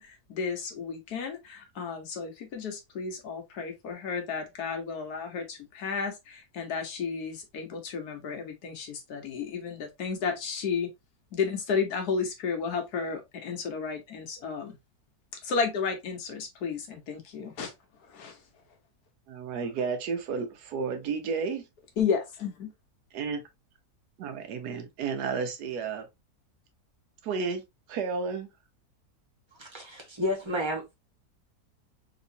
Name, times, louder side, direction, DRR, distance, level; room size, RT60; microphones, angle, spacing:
voice 1, 0.0-10.9 11.3-14.7 15.4-17.7 18.1-18.4 22.0-22.7, left 5 dB, 75° left, 1.5 m, -32 dB
voice 2, 19.3-21.6 23.1-23.4 24.2-26.1 27.2-27.6 27.9-28.5, right 5 dB, 90° right, 1.3 m, -32 dB
voice 3, 29.6-30.9, left 1 dB, 20° right, 1.1 m, -31 dB
3.6 x 3.0 x 2.6 m
omnidirectional pair, 1.6 m